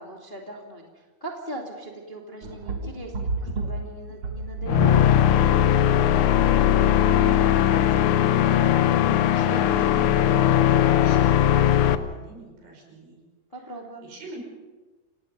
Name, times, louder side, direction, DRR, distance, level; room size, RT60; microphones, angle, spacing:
voice 1, 0.0-5.1 13.5-14.1, right 1 dB, 15° left, 0 dB, 1.8 m, -39 dB
sound 1, 2.4-5.8, right 3 dB, 50° right, 1.8 m, -31 dB
sound 2, 4.7-12.0, left 11 dB, 90° left, 1.7 m, -19 dB
voice 2, 7.1-8.6 9.0-13.2 14.0-14.4, right 3 dB, 80° right, 1 dB, 7.5 m, -40 dB
30.0 x 17.5 x 5.5 m, 1.2 s
omnidirectional pair, 4.6 m